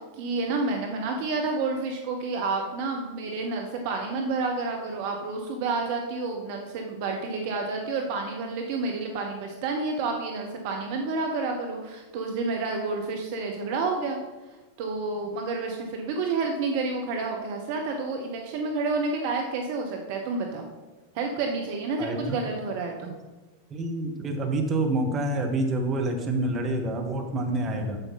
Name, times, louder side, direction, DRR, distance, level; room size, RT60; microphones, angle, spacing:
voice 1, 0.1-14.2 14.8-20.6 21.1-23.1, right 3 dB, 50° right, 2 dB, 1.1 m, -29 dB
voice 2, 22.0-22.4 23.0-23.1 23.7-28.0, right 2 dB, 25° right, 2 dB, 1.6 m, -27 dB
9.9 x 7.6 x 4.1 m, 1.2 s
figure-of-eight pair, 90°, 0 cm